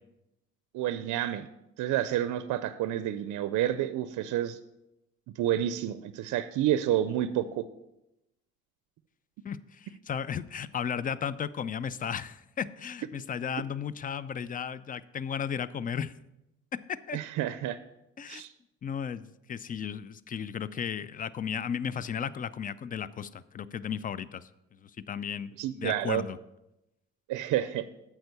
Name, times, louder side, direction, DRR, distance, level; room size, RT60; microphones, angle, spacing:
voice 1, 0.7-1.5 1.8-4.6 5.4-7.7 17.1-17.8 18.3-18.5 25.6-26.2 27.3-27.8, right 12 dB, 80° right, 13 dB, 0.5 m, -29 dB
voice 2, 9.4-16.1 16.9-17.2 18.2-18.4 18.8-24.5 24.8-26.4, left 7 dB, 30° left, 17 dB, 0.4 m, -35 dB
7.9 x 4.6 x 6.8 m, 0.89 s
cardioid pair, 90°, 30 cm